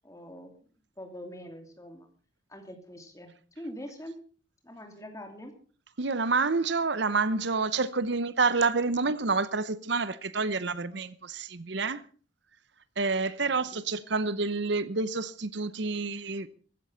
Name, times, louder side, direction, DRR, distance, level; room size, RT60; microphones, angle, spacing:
voice 1, 0.0-0.5 1.0-2.1 2.5-3.3 3.6-4.2 4.6-5.5 13.4-13.8, equal, 15° left, 2.9 m, -44 dB
voice 2, 6.0-12.0 13.0-16.5, right 4 dB, 60° right, 0.8 m, -28 dB
15.5 x 13.5 x 5.7 m
head